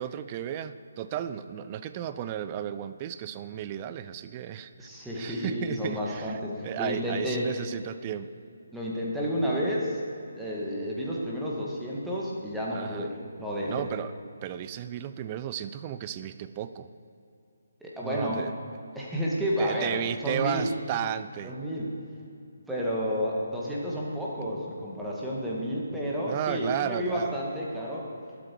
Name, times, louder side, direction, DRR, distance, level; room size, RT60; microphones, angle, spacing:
voice 1, 0.0-4.9 5.1-8.3 12.7-13.1 13.7-14.1 14.4-16.9 18.0-18.5 19.6-21.5 26.2-27.4, right 10 dB, 25° right, 12 dB, 0.4 m, -34 dB
voice 2, 4.8-7.5 8.7-10.0 10.4-13.9 17.8-18.4 19.0-20.7 21.4-21.9 22.7-28.1, equal, 5° right, -5 dB, 2.0 m, -31 dB
20.0 x 8.3 x 4.7 m, 2.6 s
figure-of-eight pair, 145°, 0 cm